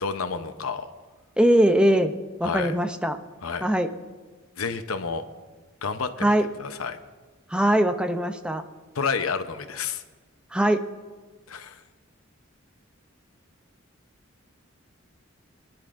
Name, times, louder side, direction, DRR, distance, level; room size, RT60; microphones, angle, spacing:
voice 1, 0.0-0.9 2.4-2.8 3.4-3.7 4.6-5.2 5.8-7.0 8.9-10.0 11.5-11.8, left 5 dB, 90° left, 9 dB, 0.8 m, -30 dB
voice 2, 1.4-2.1 2.4-3.2 3.6-3.9 6.2-6.5 7.5-8.6 10.5-10.8, right 1 dB, 5° right, 7 dB, 0.5 m, -21 dB
24.0 x 10.5 x 2.6 m, 1.4 s
head